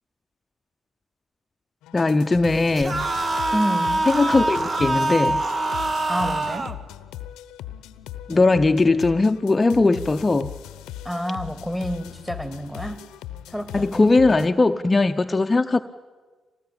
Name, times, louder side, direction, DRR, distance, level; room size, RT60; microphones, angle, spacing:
sound 1, 1.8-14.5, left 12 dB, 85° left, 0.8 m, -39 dB
voice 1, 1.9-3.1 4.1-5.4 8.3-10.5 13.7-15.8, left 3 dB, 30° left, 7 dB, 0.7 m, -19 dB
sound 2, 2.8-6.8, right 2 dB, 45° right, 1.6 m, -24 dB
voice 2, 3.5-4.0 6.1-6.7 11.0-13.0 13.5-14.1, equal, 5° right, 10 dB, 2.5 m, -29 dB
24.5 x 19.0 x 8.9 m, 1.4 s
supercardioid pair, 50°, 0 cm